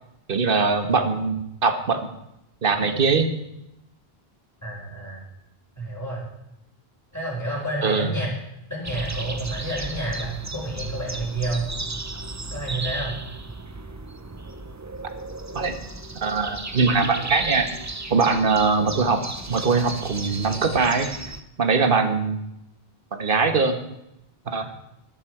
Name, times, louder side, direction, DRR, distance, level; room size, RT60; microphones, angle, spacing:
voice 1, 0.3-2.1 2.6-3.3 7.8-8.1 15.5-15.8 16.2-17.7 18.1-19.2 19.5-21.1 21.6-22.4 23.1-23.8 24.5-24.6, right 4 dB, 60° right, 8 dB, 1.4 m, -21 dB
voice 2, 4.6-5.3 5.7-6.2 7.1-8.3 8.7-11.6 12.5-13.1, right 1 dB, 15° left, -4 dB, 5.0 m, -29 dB
sound 1, 8.8-21.4, right 2 dB, 20° right, 0.6 m, -35 dB
13.5 x 12.0 x 4.9 m, 0.85 s
omnidirectional pair, 1.0 m